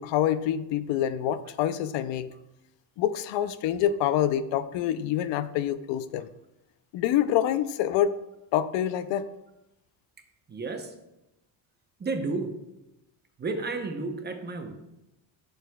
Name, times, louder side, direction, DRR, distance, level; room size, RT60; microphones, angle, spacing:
voice 1, 0.0-2.3 3.0-6.3 6.9-8.2 8.5-9.3, left 11 dB, 85° left, 14 dB, 0.6 m, -26 dB
voice 2, 10.5-10.9 12.0-12.6 13.4-14.7, right 3 dB, 25° right, 5 dB, 0.8 m, -32 dB
11.0 x 6.5 x 2.3 m, 0.94 s
cardioid pair, 140°, 43 cm